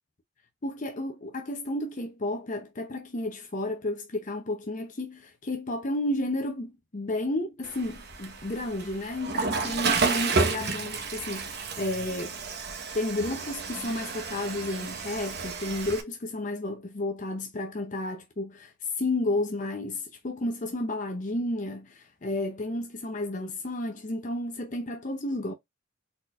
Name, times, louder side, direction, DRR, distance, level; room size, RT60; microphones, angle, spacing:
voice 1, 0.6-12.4 12.9-25.5, left 1 dB, 35° left, 0.6 m, -32 dB
Water / Toilet flush, 7.6-16.0, right 4 dB, 50° right, 1.0 m, -31 dB
4.2 x 4.1 x 2.4 m
head